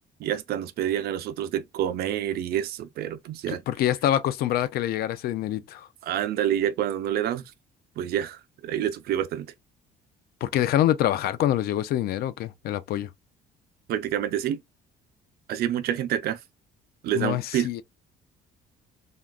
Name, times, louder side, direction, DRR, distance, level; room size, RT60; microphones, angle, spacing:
voice 1, 0.2-3.6 6.0-7.4 8.0-9.5 13.9-14.6 15.5-16.4 17.0-17.7, right 11 dB, 65° right, 0.5 m, -28 dB
voice 2, 3.5-5.9 10.4-13.1 17.1-17.8, left 12 dB, 65° left, 0.4 m, -25 dB
3.6 x 2.2 x 2.3 m
cardioid pair, 110°, 17 cm